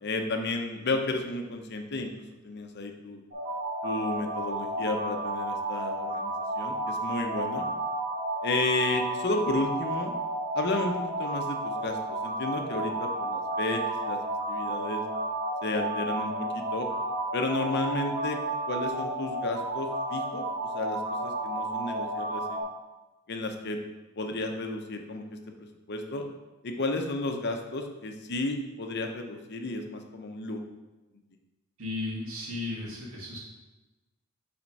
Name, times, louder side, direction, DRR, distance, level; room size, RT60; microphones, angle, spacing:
voice 1, 0.0-2.1 2.4-3.2 3.8-7.7 8.4-10.1 10.5-14.2 14.5-15.0 15.6-16.9 17.3-18.4 18.7-20.5 20.7-22.6 23.3-23.8 24.2-25.2 25.6-26.2 26.6-30.6, left 2 dB, 50° left, 4 dB, 0.8 m, -32 dB
sound 1, 3.3-22.6, right 2 dB, 40° right, 2.1 m, -32 dB
voice 2, 31.8-33.4, left 2 dB, 85° right, -4 dB, 2.3 m, -35 dB
5.8 x 4.4 x 5.3 m, 1.1 s
head